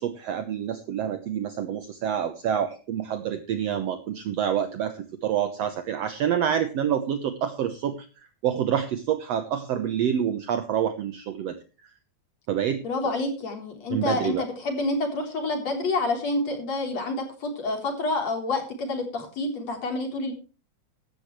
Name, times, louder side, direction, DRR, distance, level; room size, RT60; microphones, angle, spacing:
voice 1, 0.0-8.0 8.4-11.6 12.5-13.1 13.9-14.5, right 9 dB, 65° right, 9 dB, 1.9 m, -27 dB
voice 2, 12.8-20.3, left 2 dB, 55° left, 3 dB, 4.9 m, -28 dB
16.0 x 12.5 x 3.2 m, 0.34 s
omnidirectional pair, 3.6 m